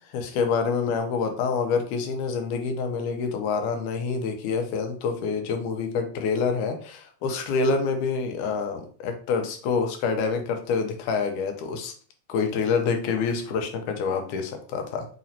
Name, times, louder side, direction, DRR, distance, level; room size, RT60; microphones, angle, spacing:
voice 1, 0.1-11.9 12.3-15.1, left 5 dB, 85° left, 5 dB, 2.1 m, -27 dB
5.0 x 2.9 x 2.7 m, 0.43 s
omnidirectional pair, 3.6 m